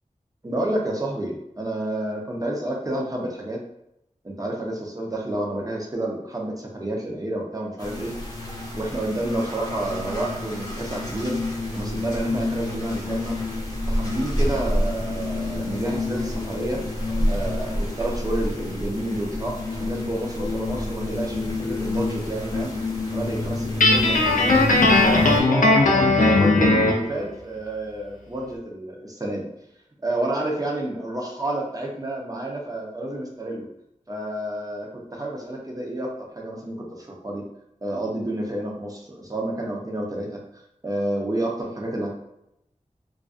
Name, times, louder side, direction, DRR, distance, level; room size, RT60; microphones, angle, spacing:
voice 1, 0.4-3.6 4.2-8.1 8.7-11.4 11.7-13.3 13.9-16.8 17.3-22.7 23.1-24.6 25.0-29.4 30.0-33.7 34.1-37.4 37.8-42.1, right 1 dB, 25° right, -1 dB, 0.6 m, -29 dB
sound 1, 7.8-25.4, left 2 dB, 25° left, 0.7 m, -28 dB
Guitar, 23.8-27.0, left 2 dB, 80° left, 0.4 m, -18 dB
2.3 x 2.2 x 2.4 m, 0.81 s
wide cardioid pair, 75°, 13 cm